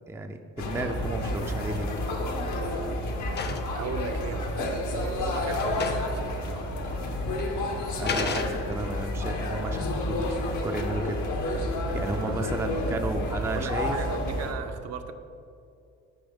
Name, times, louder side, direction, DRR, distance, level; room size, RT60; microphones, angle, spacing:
voice 1, 0.1-1.9 8.0-11.2 11.9-13.9, right 2 dB, 10° right, 6 dB, 0.4 m, -33 dB
sound 1, 0.6-14.5, left 1 dB, 75° left, 1.0 m, -30 dB
sound 2, 1.8-2.1 2.5-3.8 4.8-4.9 5.2-5.3 5.6-6.2 6.5-6.6 7.4-7.5 8.1-9.0, left 4 dB, 35° left, 0.6 m, -34 dB
voice 2, 3.7-4.7 4.9-6.7 11.9-12.8 13.4-15.1, right 6 dB, 55° right, 7 dB, 0.6 m, -37 dB
8.7 x 5.0 x 3.6 m, 2.5 s
cardioid pair, 90°, 30 cm